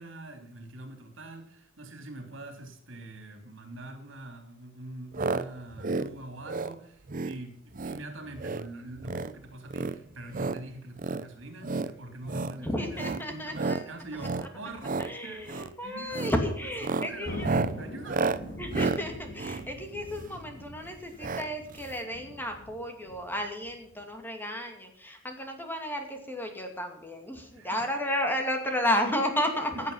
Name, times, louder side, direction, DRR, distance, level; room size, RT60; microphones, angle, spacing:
voice 1, 0.0-16.3 16.6-18.3 27.5-27.9 29.7-29.9, right 2 dB, 65° right, 5 dB, 3.6 m, -44 dB
sound 1, 5.1-5.4 5.7-6.1 6.4-6.7 7.1-7.4 7.7-8.0 8.3-8.7 9.0-9.3 9.7-10.6 11.0-11.2 11.6-11.9 12.3-12.6 12.9-13.2 13.5-13.8 14.2-14.5 14.8-15.1 15.5-15.7 16.1-16.4 16.7-20.4 21.2-21.5 21.8-21.9 22.0-22.1, right 3 dB, 40° right, 0.7 m, -31 dB
voice 2, 12.6-13.8 14.1-14.5 15.0-17.6 18.6-29.9, left 1 dB, 10° left, 4 dB, 2.5 m, -32 dB
Thunder, 17.2-24.1, left 1 dB, 65° left, 2.4 m, -43 dB
17.0 x 8.7 x 5.7 m, 0.72 s
head